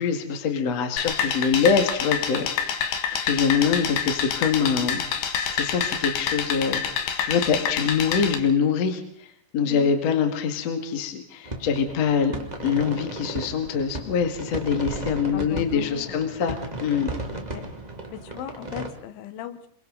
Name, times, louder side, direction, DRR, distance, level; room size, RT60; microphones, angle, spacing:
voice 1, 0.0-2.9 3.2-5.0 5.5-6.8 7.2-12.4 12.6-17.1, left 6 dB, 45° left, 5 dB, 2.4 m, -24 dB
sound 1, 1.0-8.3, left 7 dB, 65° left, 3.5 m, -27 dB
voice 2, 9.6-9.9 15.3-16.2 17.5-17.7 18.1-19.7, left 11 dB, 85° left, 11 dB, 3.7 m, -37 dB
sound 2, 11.4-18.9, right 2 dB, 25° right, 0.9 m, -35 dB
28.0 x 24.5 x 4.0 m, 0.65 s
omnidirectional pair, 5.3 m